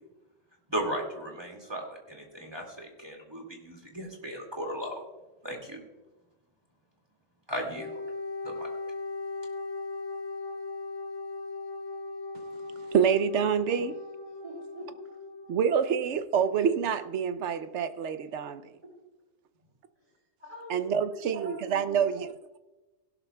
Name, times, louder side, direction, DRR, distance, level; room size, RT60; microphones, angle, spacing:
voice 1, 0.7-5.0 5.4-5.8 7.5-7.9 8.4-8.7, equal, 20° right, 1 dB, 2.2 m, -36 dB
Wind instrument woodwind instrument, 7.7-15.5, left 3 dB, 70° left, 1.9 m, -38 dB
voice 2, 12.9-13.9 15.5-18.6 20.7-22.3, right 7 dB, 65° right, 11 dB, 1.0 m, -27 dB
voice 3, 14.4-14.9 20.0-20.1 20.4-22.2, equal, 35° right, -3 dB, 3.1 m, -43 dB
17.0 x 12.0 x 2.3 m, 1.1 s
omnidirectional pair, 1.3 m